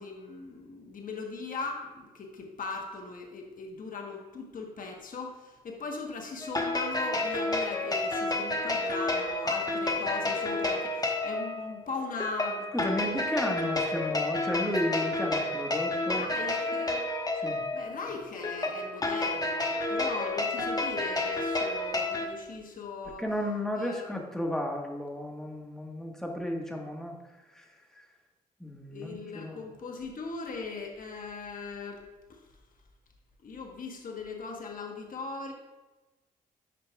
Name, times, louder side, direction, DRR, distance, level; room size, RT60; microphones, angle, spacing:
voice 1, 0.0-12.7 16.1-17.0 17.7-23.2 23.8-24.1 28.9-32.4 33.4-35.5, left 4 dB, 50° left, 1 dB, 1.2 m, -39 dB
sound 1, 6.4-22.3, left 2 dB, 20° left, 1.2 m, -30 dB
voice 2, 12.7-16.2 17.4-17.6 23.2-27.1 28.6-29.6, left 1 dB, 5° left, 1 dB, 1.4 m, -33 dB
11.0 x 5.1 x 2.4 m, 1.1 s
hypercardioid pair, 45°, 18 cm